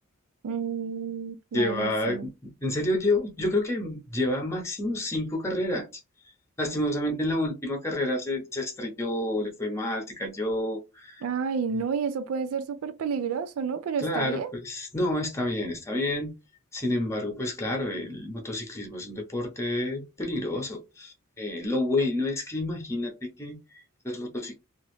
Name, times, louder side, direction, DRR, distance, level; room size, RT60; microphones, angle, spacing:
voice 1, 0.4-2.2 11.2-14.5, right 6 dB, 80° right, 0.4 m, -30 dB
voice 2, 1.5-5.9 6.6-11.2 14.0-16.3 16.7-24.6, left 1 dB, 15° left, 0.8 m, -29 dB
2.9 x 2.5 x 3.1 m
head